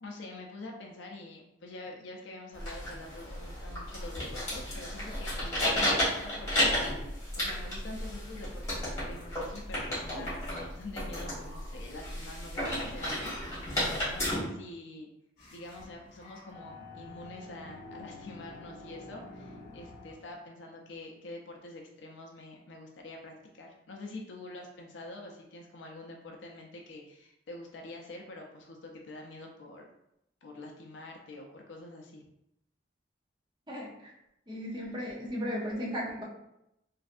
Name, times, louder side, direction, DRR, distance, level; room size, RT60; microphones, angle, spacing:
voice 1, 0.0-15.1 15.5-29.9 30.4-32.3, left 2 dB, 70° left, 1 dB, 0.4 m, -46 dB
sound 1, 2.5-14.3, left 1 dB, 15° left, 1.4 m, -33 dB
sound 2, 15.4-20.3, left 2 dB, 45° left, 0.8 m, -49 dB
voice 2, 33.7-34.1 34.5-36.2, equal, 25° right, -4 dB, 0.7 m, -35 dB
3.1 x 2.6 x 2.5 m, 0.82 s
head